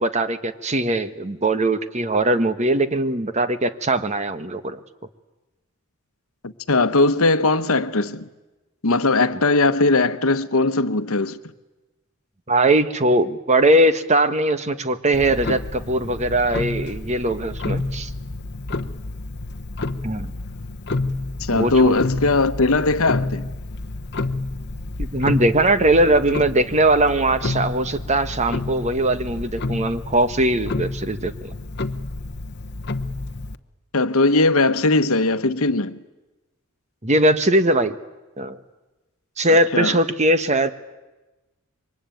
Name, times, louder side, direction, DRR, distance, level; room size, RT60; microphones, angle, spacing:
voice 1, 0.0-4.8 12.5-18.1 20.0-20.3 21.5-21.9 25.0-31.5 37.0-38.0 38.4-38.6 39.4-40.7, right 1 dB, 30° right, 1.2 m, -20 dB
voice 2, 6.4-8.3 8.8-11.4 21.4-23.5 33.9-36.0 39.7-40.0, left 3 dB, 70° left, 1.1 m, -19 dB
Clock, 15.1-33.6, left 2 dB, 50° left, 1.0 m, -29 dB
27.0 x 24.0 x 9.1 m
head